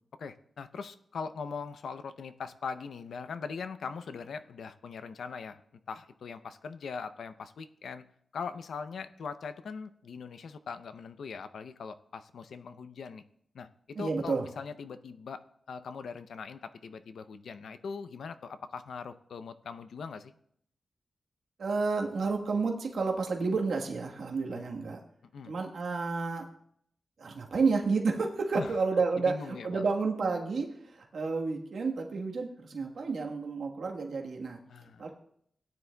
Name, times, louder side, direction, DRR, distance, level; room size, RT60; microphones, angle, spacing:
voice 1, 0.2-5.6 5.9-8.0 8.3-13.2 13.5-15.4 15.7-20.3 24.5-24.6 25.3-25.5 28.5-28.8 29.2-29.9 34.7-35.1, left 5 dB, 85° left, 11 dB, 0.5 m, -41 dB
voice 2, 13.9-14.5 21.6-25.0 25.4-26.4 27.2-29.3 29.6-34.6 35.0-35.1, right 4 dB, 70° right, 1 dB, 1.3 m, -30 dB
17.5 x 9.6 x 2.2 m, 0.69 s
wide cardioid pair, 155°, 0 cm